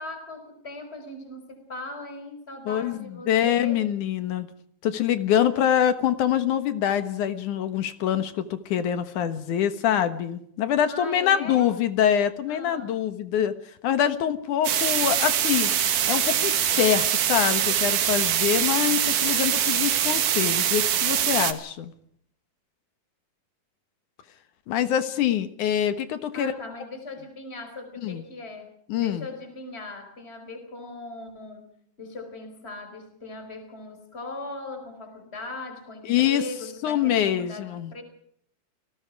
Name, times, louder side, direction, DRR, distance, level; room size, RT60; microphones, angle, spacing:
voice 1, 0.0-3.8 10.9-11.7 12.5-13.0 26.3-38.0, left 2 dB, 15° left, 6 dB, 4.7 m, -39 dB
voice 2, 2.7-3.0 3.3-4.5 4.8-13.5 13.8-15.7 16.1-21.9 24.7-26.5 28.0-28.2 28.9-29.3 36.1-36.4 36.8-37.9, left 10 dB, 70° left, 11 dB, 2.7 m, -24 dB
sound 1, 14.6-21.5, right 10 dB, 70° right, 3.1 m, -23 dB
29.5 x 19.5 x 4.8 m, 0.68 s
omnidirectional pair, 3.8 m